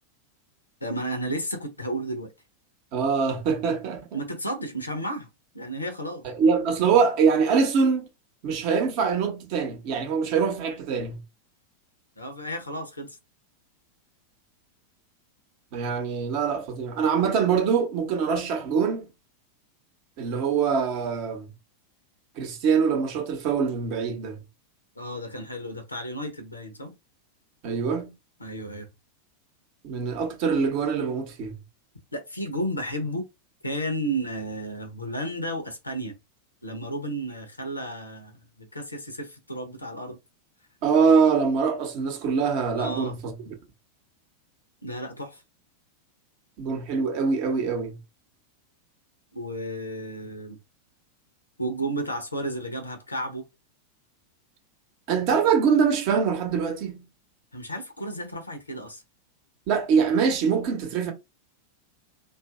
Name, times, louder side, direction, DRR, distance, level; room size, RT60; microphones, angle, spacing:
voice 1, 0.8-2.3 4.1-5.3 5.5-6.2 12.2-13.2 25.0-26.9 28.4-28.9 32.1-33.3 33.6-36.1 36.6-40.2 42.8-43.2 44.8-45.4 49.3-50.6 51.6-53.4 57.5-59.0, right 1 dB, 80° left, 0.6 m, -32 dB
voice 2, 2.9-4.1 6.2-8.1 8.4-11.2 15.7-19.1 20.2-21.5 22.4-24.4 27.6-28.1 29.8-31.6 40.8-43.4 46.6-48.0 55.1-57.0 59.7-61.1, right 6 dB, 45° right, 0.8 m, -24 dB
2.6 x 2.4 x 2.3 m
figure-of-eight pair, 90°, 0 cm